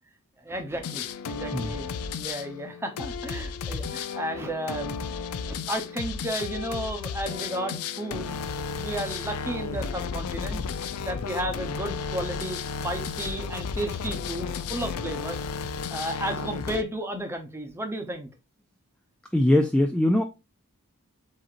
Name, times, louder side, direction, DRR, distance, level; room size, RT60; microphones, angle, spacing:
voice 1, 0.4-5.2 5.5-8.4 8.7-10.6 11.0-15.4 15.9-18.3, right 1 dB, 10° right, 0.8 m, -33 dB
sound 1, 0.8-16.8, left 5 dB, 75° left, 0.4 m, -33 dB
voice 2, 19.3-20.2, left 1 dB, 5° left, 0.3 m, -21 dB
7.6 x 2.8 x 2.5 m
head